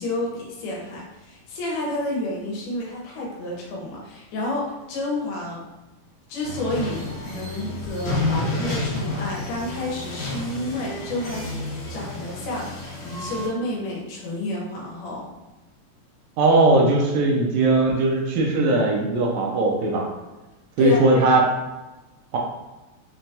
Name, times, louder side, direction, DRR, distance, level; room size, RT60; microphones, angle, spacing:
voice 1, 0.0-5.6 6.3-11.5 11.9-15.3 20.8-21.4, left 1 dB, 80° left, -3 dB, 2.4 m, -30 dB
sound 1, 6.4-13.5, left 2 dB, 65° left, 2.5 m, -30 dB
voice 2, 16.4-20.1 20.8-21.4 22.3-22.4, right 2 dB, 80° right, -1 dB, 1.7 m, -19 dB
5.9 x 2.2 x 2.7 m, 1.1 s
omnidirectional pair, 3.8 m